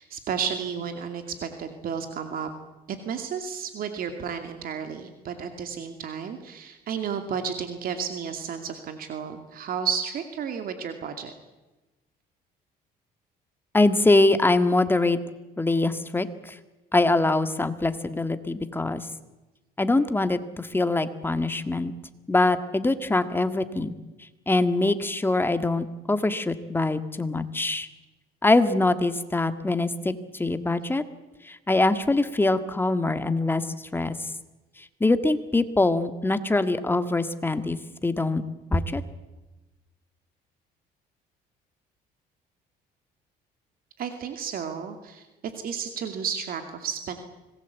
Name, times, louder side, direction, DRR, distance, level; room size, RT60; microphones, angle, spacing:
voice 1, 0.0-2.5 2.9-11.3 44.0-47.2, right 7 dB, 60° right, 7 dB, 2.5 m, -32 dB
voice 2, 13.7-15.2 15.6-16.6 16.9-19.1 19.8-21.9 22.3-23.9 24.5-27.9 28.4-31.0 31.4-34.3 34.8-38.4 38.7-39.0, left 2 dB, 10° left, 10 dB, 1.8 m, -23 dB
25.5 x 20.0 x 8.3 m, 1.1 s
cardioid pair, 110°, 17 cm